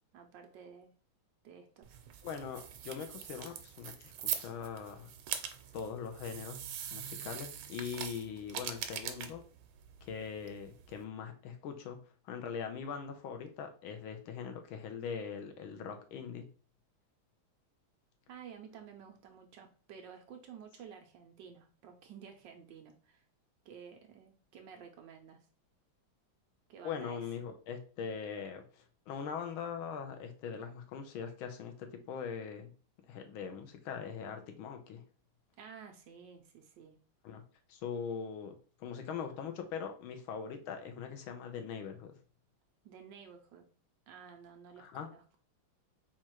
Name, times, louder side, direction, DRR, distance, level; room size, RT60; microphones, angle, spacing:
voice 1, 0.1-0.9 1.4-2.0 18.3-23.2 23.6-25.4 26.7-27.2 35.6-37.0 42.8-43.6 44.1-45.4, right 7 dB, 70° right, 4 dB, 1.3 m, -52 dB
sound 1, 1.8-11.0, right 9 dB, 85° right, 1.5 m, -43 dB
voice 2, 2.2-5.1 5.7-6.6 6.9-9.4 10.0-12.0 12.2-16.5 26.8-32.7 33.1-35.0 37.2-37.4 37.7-42.1 44.8-45.1, left 6 dB, 80° left, 6 dB, 1.5 m, -41 dB
4.3 x 2.4 x 4.4 m, 0.39 s
omnidirectional pair, 2.3 m